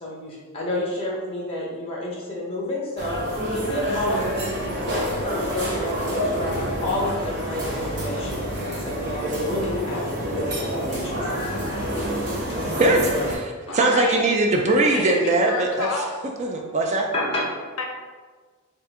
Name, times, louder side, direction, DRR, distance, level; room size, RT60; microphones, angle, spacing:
voice 1, 0.0-3.2 3.5-8.4 8.8-10.5 10.9-11.3 12.0-12.8 13.6-13.8 14.8-14.9 17.1-17.7, left 1 dB, 25° left, -3 dB, 0.9 m, -30 dB
sound 1, 3.0-13.3, equal, 50° right, 0.9 m, -27 dB
voice 2, 12.8-15.9 16.4-17.1, right 2 dB, 30° right, 2 dB, 0.3 m, -21 dB
voice 3, 13.7-14.2 14.8-16.1 17.8-17.9, left 3 dB, 70° left, 1 dB, 0.6 m, -30 dB
4.1 x 2.5 x 3.5 m, 1.4 s
head